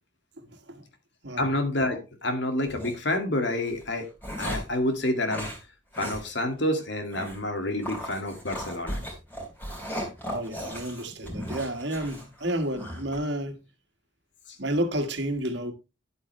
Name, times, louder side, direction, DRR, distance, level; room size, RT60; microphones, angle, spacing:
voice 1, 0.4-0.8 1.2-1.4 10.2-13.6 14.6-15.7, right 1 dB, 65° right, 1.7 m, -31 dB
voice 2, 1.4-4.1 4.4-5.5 6.0-9.0 11.2-11.4, left 1 dB, 65° left, 2.1 m, -28 dB
sound 1, 2.6-2.9 3.7-4.8 5.3-5.6 5.9-6.2 6.5-6.6 7.1-7.4 7.8-13.2, equal, 10° left, 3.4 m, -36 dB
11.0 x 8.3 x 3.2 m
head